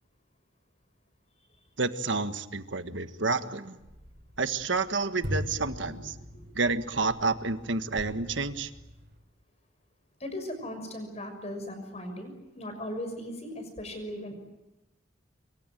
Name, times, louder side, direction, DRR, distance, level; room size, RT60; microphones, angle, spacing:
voice 1, 1.8-3.8 4.4-6.1 6.5-8.7, right 3 dB, 70° right, 10 dB, 1.6 m, -29 dB
sound 1, 3.8-9.2, equal, 50° right, 6.3 m, -41 dB
voice 2, 10.2-14.4, left 1 dB, 35° left, 6 dB, 6.2 m, -38 dB
25.5 x 24.0 x 9.2 m, 0.96 s
head